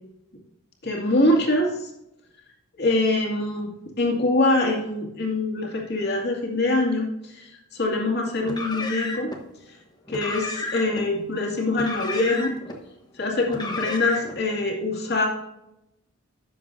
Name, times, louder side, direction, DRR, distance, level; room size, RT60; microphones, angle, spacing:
voice 1, 0.8-1.9 2.8-3.7 4.0-7.1 7.4-9.3 10.1-12.5 13.2-15.3, left 2 dB, 50° left, -1 dB, 2.3 m, -24 dB
Car, 8.4-9.4 10.1-11.0 11.7-12.8 13.5-14.4, left 2 dB, 20° left, 1.1 m, -32 dB
11.5 x 7.7 x 2.7 m, 0.87 s
head